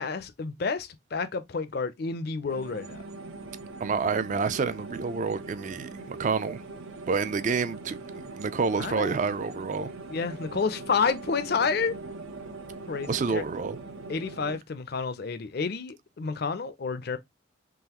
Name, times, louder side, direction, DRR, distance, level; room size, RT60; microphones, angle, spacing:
voice 1, 0.0-3.0 8.8-9.2 10.1-11.9 12.9-13.4 14.1-17.2, left 5 dB, 50° left, 0.5 m, -30 dB
sound 1, 2.5-14.6, right 3 dB, 85° right, 0.7 m, -41 dB
voice 2, 3.8-6.6 7.1-8.0 8.3-9.9 13.1-13.8, right 5 dB, 35° right, 0.3 m, -28 dB
3.8 x 3.1 x 2.9 m
head